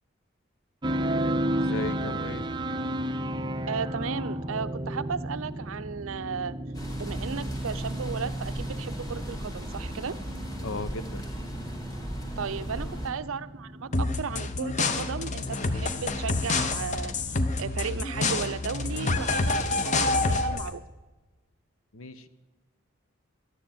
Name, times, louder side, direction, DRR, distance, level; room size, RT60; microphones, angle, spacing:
sound 1, 0.8-20.8, right 1 dB, 20° right, 0.5 m, -34 dB
voice 1, 1.6-2.5 10.6-11.2 12.8-13.0 21.9-22.3, left 2 dB, 75° left, 13 dB, 0.9 m, -36 dB
voice 2, 3.7-6.5 7.0-10.1 12.4-17.1 17.6-20.8, right 6 dB, 75° right, 14 dB, 0.5 m, -35 dB
sound 2, 6.7-13.1, equal, 15° left, 1.8 m, -37 dB
sound 3, 13.9-20.7, left 3 dB, 35° left, 0.7 m, -27 dB
11.5 x 10.0 x 8.7 m, 1.3 s
head